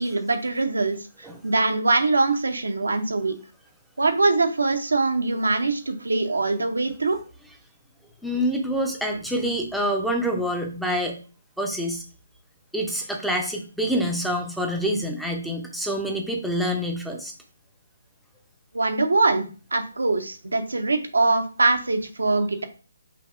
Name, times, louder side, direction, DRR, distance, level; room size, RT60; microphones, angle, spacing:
voice 1, 0.0-3.3 4.0-7.2 18.7-22.6, right 3 dB, 75° right, 6 dB, 0.7 m, -23 dB
voice 2, 8.2-11.1 11.6-12.0 12.7-17.3, equal, ahead, 0 dB, 0.7 m, -26 dB
5.8 x 2.7 x 2.5 m, 0.37 s
figure-of-eight pair, 140°, 0 cm